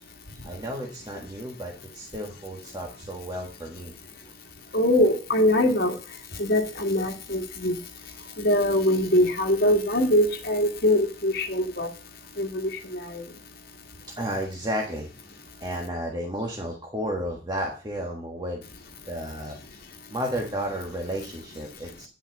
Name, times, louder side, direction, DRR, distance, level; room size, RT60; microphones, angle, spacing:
voice 1, 0.4-3.9 4.2-4.3 14.2-15.1 15.6-18.6 19.0-19.8 20.1-22.1, equal, 25° right, 0 dB, 1.5 m, -32 dB
voice 2, 4.7-6.0 6.4-7.7 8.4-11.9 12.4-13.2, left 1 dB, 55° left, 3 dB, 1.9 m, -23 dB
9.9 x 5.6 x 7.2 m, 0.36 s
head